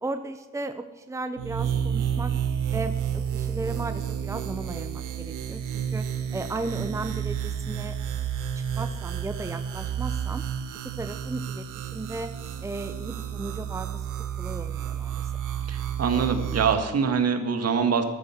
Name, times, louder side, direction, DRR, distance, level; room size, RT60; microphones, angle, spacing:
voice 1, 0.0-2.3 2.7-8.0 8.8-10.4 11.0-12.3 12.6-14.1 14.4-15.3, right 2 dB, 10° right, 8 dB, 0.9 m, -35 dB
sound 1, 1.4-16.7, right 8 dB, 85° right, 1.6 m, -31 dB
voice 2, 15.7-18.0, right 6 dB, 55° right, 6 dB, 2.1 m, -24 dB
14.5 x 12.5 x 6.1 m, 1.1 s
cardioid pair, 90°, 30 cm